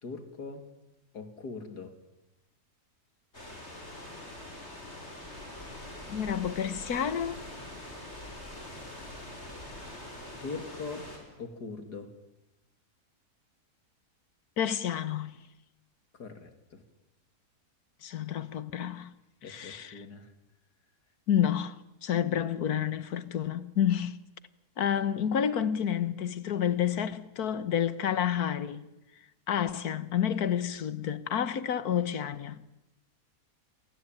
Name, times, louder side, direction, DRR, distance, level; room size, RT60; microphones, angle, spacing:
voice 1, 0.0-0.7 1.1-2.0 10.4-11.1 11.4-12.1 16.1-16.8 19.4-20.3, left 4 dB, 90° left, 3.3 m, -41 dB
sound 1, 3.3-11.2, left 1 dB, 40° left, 6.9 m, -44 dB
voice 2, 6.1-7.4 14.6-15.4 18.0-19.1 19.5-19.9 21.3-24.2 24.8-28.9 29.5-32.6, left 9 dB, 70° left, 1.7 m, -29 dB
28.5 x 22.5 x 9.1 m
omnidirectional pair, 1.7 m